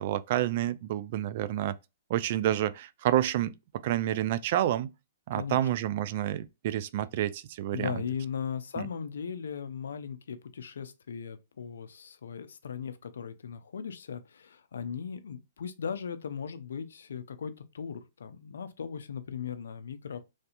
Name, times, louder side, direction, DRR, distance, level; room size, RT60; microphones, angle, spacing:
voice 1, 0.0-1.8 2.1-3.5 3.8-4.9 5.3-8.0 8.8-8.9, right 12 dB, 50° right, 0.3 m, -29 dB
voice 2, 5.3-5.7 7.7-20.2, left 7 dB, 80° left, 0.5 m, -38 dB
3.2 x 2.8 x 2.5 m
hypercardioid pair, 130°, 0 cm